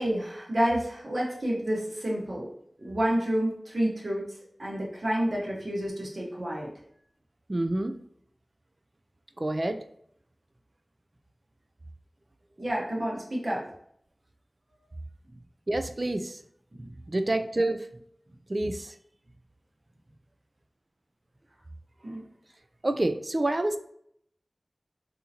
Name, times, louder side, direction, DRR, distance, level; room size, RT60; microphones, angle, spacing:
voice 1, 0.0-2.5 2.8-4.2 4.6-6.7 12.6-13.7 16.7-16.9 22.0-22.2, right 1 dB, 60° right, -4 dB, 1.1 m, -29 dB
voice 2, 7.5-8.0 9.4-9.8 15.7-16.4 17.1-17.9 18.5-18.9 22.8-23.8, right 1 dB, 40° right, 8 dB, 0.3 m, -28 dB
3.7 x 2.8 x 2.8 m, 0.68 s
wide cardioid pair, 65°, 0 cm